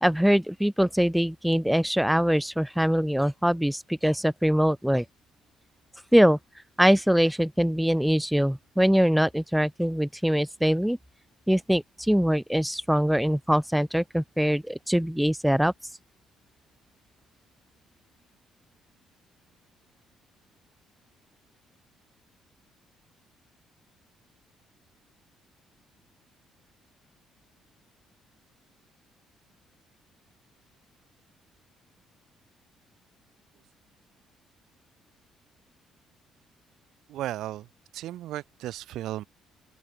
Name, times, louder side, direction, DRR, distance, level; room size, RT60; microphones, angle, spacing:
voice 1, 0.0-5.0 6.1-6.4 6.8-11.0 11.5-15.7, equal, ahead, 1.0 m, -23 dB
voice 2, 37.1-37.7 37.9-39.2, right 14 dB, 80° right, 1.0 m, -35 dB
open air
cardioid pair, 90°, 0 cm